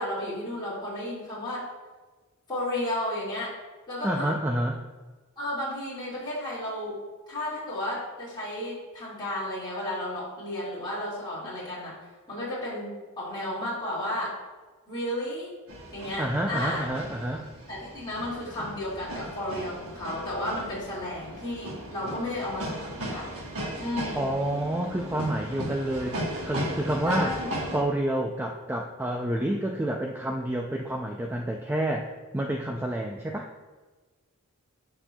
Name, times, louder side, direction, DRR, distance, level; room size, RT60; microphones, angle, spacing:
voice 1, 0.0-1.6 2.5-3.5 3.9-4.3 5.4-7.0 7.3-11.9 12.3-14.3 14.9-15.5 15.9-16.9 17.7-23.3 23.8-24.4 27.0-27.6, left 1 dB, 20° left, -9 dB, 2.1 m, -33 dB
voice 2, 4.0-4.8 16.2-17.5 24.1-27.3 27.7-32.1 32.3-33.5, right 1 dB, 10° right, 1 dB, 0.3 m, -29 dB
sound 1, 15.7-27.8, right 1 dB, 70° right, 1.4 m, -37 dB
12.0 x 4.3 x 2.3 m, 1.3 s
head